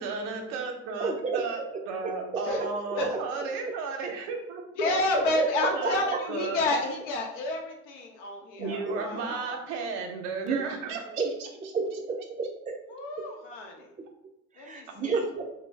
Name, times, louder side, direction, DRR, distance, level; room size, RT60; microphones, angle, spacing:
voice 1, 0.0-1.6 1.9-5.3 5.7-6.6 8.6-11.5, right 4 dB, 65° right, 3 dB, 0.7 m, -34 dB
voice 2, 1.0-1.7 2.0-2.4 5.1-5.5 5.8-6.2 8.6-9.3 10.4-10.6 11.2-11.3 11.7-12.8 13.2-13.3 14.6-15.4, right 4 dB, 20° right, 2 dB, 0.5 m, -31 dB
voice 3, 4.8-9.6 12.9-13.9 14.6-15.2, left 2 dB, 75° left, 1 dB, 0.7 m, -30 dB
2.5 x 2.1 x 3.2 m, 0.83 s
hypercardioid pair, 75°, 36 cm